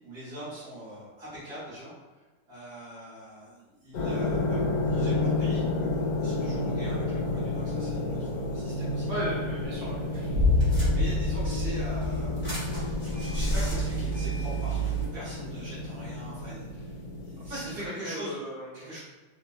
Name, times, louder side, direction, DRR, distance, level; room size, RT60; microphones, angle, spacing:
voice 1, 0.0-9.1 10.5-12.6 13.0-18.4 18.7-19.0, equal, 60° right, -10 dB, 1.3 m, -43 dB
sound 1, 3.9-17.9, left 2 dB, 75° left, 1.3 m, -31 dB
voice 2, 9.1-10.4 17.5-17.7 18.0-18.7, right 1 dB, 40° right, -9 dB, 1.1 m, -35 dB
sound 2, 10.1-10.2 10.6-11.4 11.9-15.1, right 4 dB, 25° left, 0.6 m, -32 dB
sound 3, 10.3-13.3, left 2 dB, 90° right, 0.6 m, -26 dB
3.3 x 2.1 x 2.3 m, 1.2 s
omnidirectional pair, 2.0 m